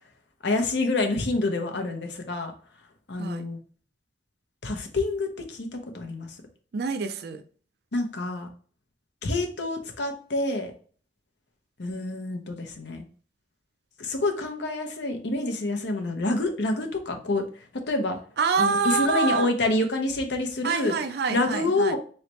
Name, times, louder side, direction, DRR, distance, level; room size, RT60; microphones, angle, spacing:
voice 1, 0.4-2.5 3.1-3.6 4.6-6.4 7.9-8.5 9.2-10.7 11.8-13.1 14.0-17.4 17.9-18.2 18.6-20.9 21.3-22.0, left 2 dB, 70° left, 0.8 m, -27 dB
voice 2, 6.7-7.4 18.4-19.5 20.6-22.0, right 5 dB, 60° right, 0.4 m, -26 dB
4.0 x 3.2 x 3.0 m
head